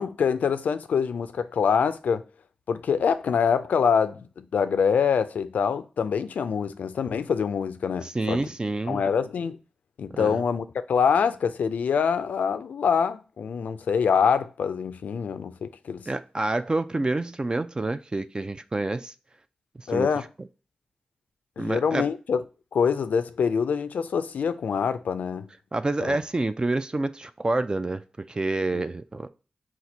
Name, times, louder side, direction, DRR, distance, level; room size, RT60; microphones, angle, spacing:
voice 1, 0.0-2.2 2.7-8.4 8.9-9.6 10.0-16.1 19.9-20.3 21.6-22.4 22.7-25.5 26.0-26.2 28.7-28.8, left 6 dB, 85° left, 0.3 m, -25 dB
voice 2, 8.0-9.0 10.1-10.4 16.1-19.1 19.8-20.1 21.6-22.0 25.7-29.3, right 2 dB, 30° right, 0.3 m, -28 dB
4.3 x 2.5 x 3.9 m
cardioid pair, 45°, 3 cm